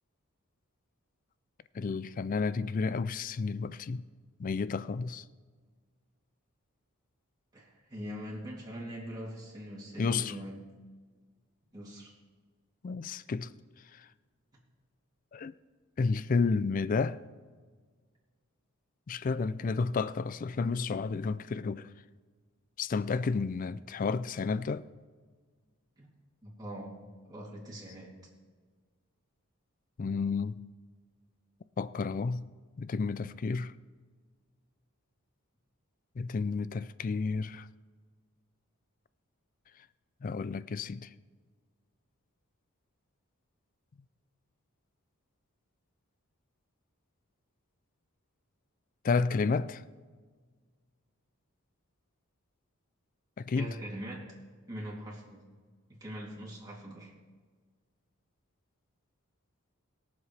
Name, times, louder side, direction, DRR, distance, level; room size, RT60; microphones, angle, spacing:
voice 1, 1.7-4.0 4.4-5.2 10.0-10.4 12.8-13.5 13.9-14.1 15.3-15.5 16.0-17.2 19.1-21.9 22.8-24.8 30.0-30.6 31.8-32.5 32.8-33.7 36.2-37.7 40.2-41.1 49.0-49.8 53.4-53.7, left 4 dB, 40° left, 0.3 m, -31 dB
voice 2, 7.5-10.7 11.7-12.1 26.0-26.1 26.4-28.1 53.6-54.3 54.7-55.4 55.9-57.1, equal, 20° right, 2.8 m, -42 dB
22.0 x 7.3 x 3.3 m
head